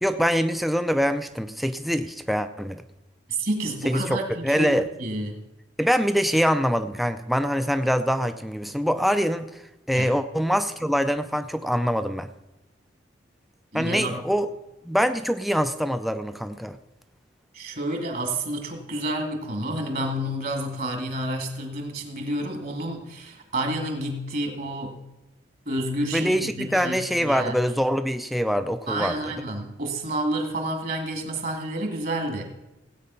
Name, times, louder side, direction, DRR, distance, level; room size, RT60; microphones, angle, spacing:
voice 1, 0.0-2.8 3.8-4.9 5.8-9.6 9.9-12.3 13.7-14.5 14.8-16.8 26.1-29.2, equal, ahead, 9 dB, 0.4 m, -24 dB
voice 2, 3.3-5.4 9.9-10.1 13.7-14.1 17.5-25.1 25.7-27.5 28.9-32.4, right 1 dB, 50° right, 4 dB, 2.1 m, -29 dB
17.0 x 8.6 x 5.7 m, 0.97 s
head